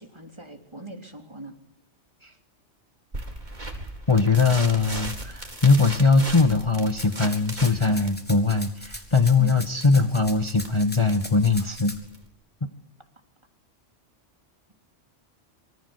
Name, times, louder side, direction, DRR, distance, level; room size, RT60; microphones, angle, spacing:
voice 1, 0.0-1.6 9.4-9.6 11.6-11.8, right 3 dB, 25° right, 4 dB, 3.7 m, -39 dB
sound 1, 3.1-12.3, right 1 dB, 40° right, 4.7 m, -38 dB
voice 2, 4.1-11.9 12.6-12.7, left 4 dB, 25° left, 7 dB, 1.4 m, -21 dB
Rattle (instrument), 7.0-12.0, equal, 10° left, 4.2 m, -40 dB
27.0 x 25.0 x 8.1 m, 0.68 s
omnidirectional pair, 1.2 m